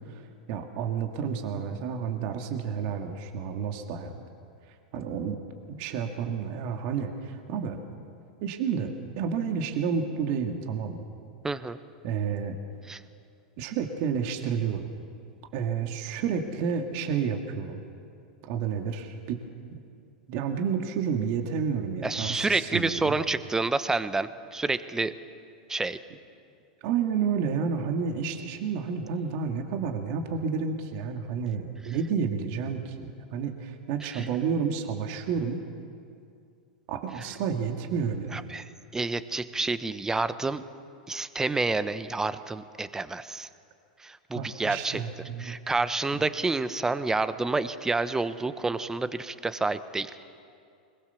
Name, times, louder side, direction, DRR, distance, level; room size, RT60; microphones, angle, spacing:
voice 1, 0.1-4.2 4.9-5.4 5.7-7.8 8.4-11.0 12.0-12.6 13.6-14.9 15.5-17.8 18.4-19.4 19.7-19.8 20.3-23.2 26.8-35.6 36.9-38.5 44.3-45.6, right 6 dB, 55° right, 4 dB, 2.1 m, -30 dB
voice 2, 11.4-11.8 12.9-13.0 22.0-25.1 25.7-26.0 34.1-34.3 38.3-40.6 41.1-43.5 44.0-45.0 45.4-50.1, right 3 dB, 10° right, 13 dB, 1.0 m, -29 dB
23.0 x 21.0 x 7.1 m, 2.4 s
hypercardioid pair, 105°, 5 cm